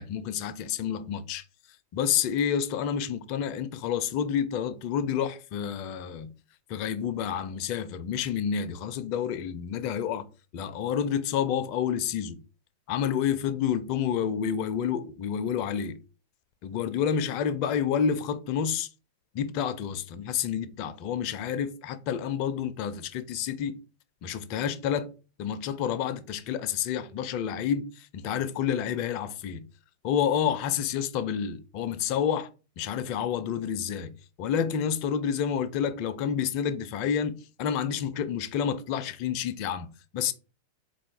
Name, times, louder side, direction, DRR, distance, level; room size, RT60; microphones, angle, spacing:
voice 1, 0.0-1.4 1.9-6.3 6.7-10.3 10.5-12.4 12.9-16.0 16.6-18.9 19.3-23.8 24.2-25.1 25.4-29.7 30.0-32.5 32.8-40.3, left 8 dB, 45° left, 0.4 m, -29 dB
4.0 x 2.3 x 2.9 m
figure-of-eight pair, 90°, 0 cm